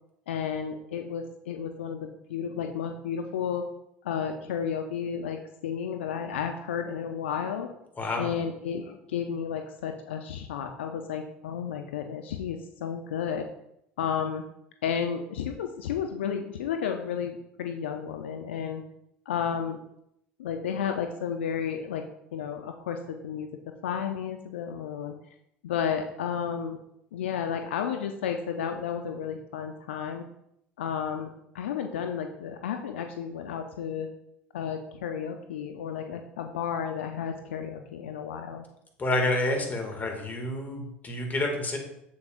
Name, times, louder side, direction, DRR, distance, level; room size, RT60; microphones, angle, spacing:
voice 1, 0.3-3.6 4.0-7.7 8.2-13.5 14.0-14.4 14.8-18.8 19.3-19.8 20.4-22.0 22.3-23.5 23.8-25.2 25.6-26.8 27.1-30.2 30.8-34.1 34.5-38.7, left 7 dB, 80° left, 5 dB, 0.5 m, -32 dB
voice 2, 8.0-8.3 39.0-41.8, left 2 dB, 30° left, 2 dB, 2.0 m, -29 dB
7.7 x 7.1 x 2.5 m, 0.78 s
hypercardioid pair, 75°, 6 cm